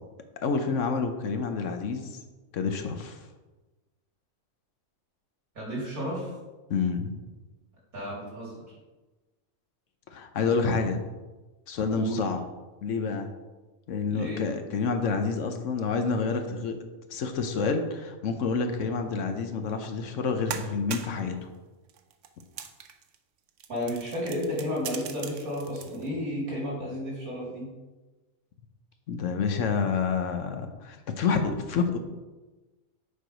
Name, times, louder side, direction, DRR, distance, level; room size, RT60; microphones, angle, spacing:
voice 1, 0.4-2.1 2.5-3.2 6.7-7.1 10.1-11.0 11.7-12.4 12.8-13.3 13.9-16.8 17.1-21.4 29.1-32.0, left 5 dB, 65° left, 6 dB, 1.0 m, -28 dB
voice 2, 5.5-6.3 7.9-8.6 11.9-12.2 14.1-14.4 23.7-27.7, equal, 85° right, -5 dB, 3.3 m, -32 dB
sound 1, 19.8-20.0 20.3-21.3 21.9-23.2 23.5-26.1, right 8 dB, 65° right, 0.9 m, -40 dB
6.9 x 4.7 x 5.0 m, 1.2 s
omnidirectional pair, 1.5 m